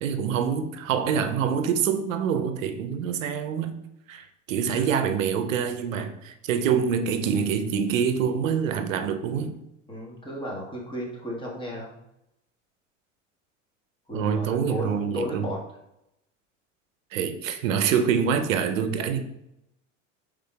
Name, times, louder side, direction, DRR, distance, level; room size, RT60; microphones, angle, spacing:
voice 1, 0.0-3.8 4.1-9.6 14.1-15.5 17.1-19.2, right 7 dB, 85° right, 0.5 m, -26 dB
voice 2, 9.9-11.9 14.1-15.6, equal, 15° left, 1.4 m, -34 dB
4.9 x 3.5 x 2.3 m
hypercardioid pair, 80°, 38 cm